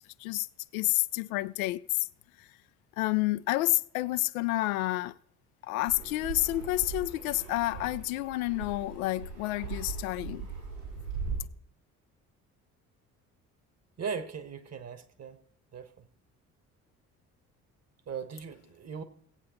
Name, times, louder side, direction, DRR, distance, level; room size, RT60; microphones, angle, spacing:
voice 1, 0.7-1.8 3.0-5.2 5.6-10.5, left 18 dB, 75° left, 0.5 m, -29 dB
Fixed-wing aircraft airplane, 5.9-11.4, right 5 dB, 80° right, 4.8 m, -39 dB
voice 2, 14.0-15.4 15.7-15.9 18.1-19.0, right 6 dB, 35° right, 1.4 m, -38 dB
16.5 x 8.4 x 4.3 m
figure-of-eight pair, 50°, 43 cm